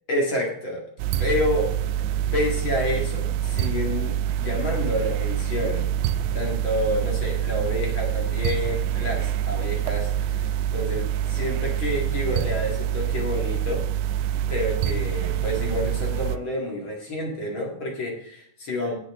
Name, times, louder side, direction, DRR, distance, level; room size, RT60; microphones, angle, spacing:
voice 1, 0.1-0.8 1.2-1.7 2.3-5.8 6.3-13.8 14.5-18.9, left 1 dB, 40° left, -1 dB, 2.1 m, -29 dB
sound 1, 1.0-16.4, right 10 dB, 85° right, 2.7 m, -26 dB
17.0 x 8.0 x 3.7 m, 0.65 s
omnidirectional pair, 4.7 m